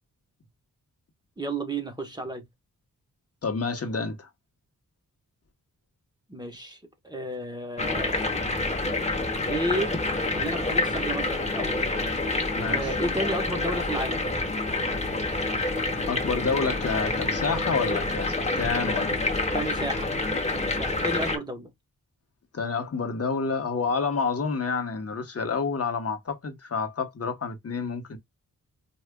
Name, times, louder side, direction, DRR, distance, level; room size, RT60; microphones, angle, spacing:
voice 1, 1.4-2.4 6.3-8.2 9.5-11.8 12.6-14.3 19.5-20.1 20.5-21.7, right 1 dB, 10° right, 0.9 m, -32 dB
voice 2, 3.4-4.3 12.5-12.9 16.1-19.3 22.5-28.2, left 4 dB, 45° left, 1.0 m, -29 dB
sound 1, 7.8-21.4, left 2 dB, 20° left, 0.9 m, -27 dB
4.7 x 2.3 x 2.2 m
cardioid pair, 80°, 35 cm